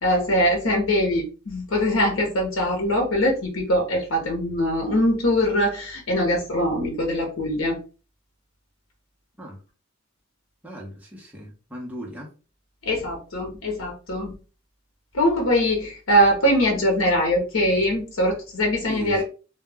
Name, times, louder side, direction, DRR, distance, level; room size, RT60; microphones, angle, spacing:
voice 1, 0.0-7.8 12.8-14.4 15.1-19.2, equal, 80° left, 1 dB, 0.8 m, -22 dB
voice 2, 10.6-12.3 18.9-19.2, equal, 10° right, -2 dB, 0.6 m, -37 dB
2.2 x 2.1 x 3.4 m, 0.35 s
head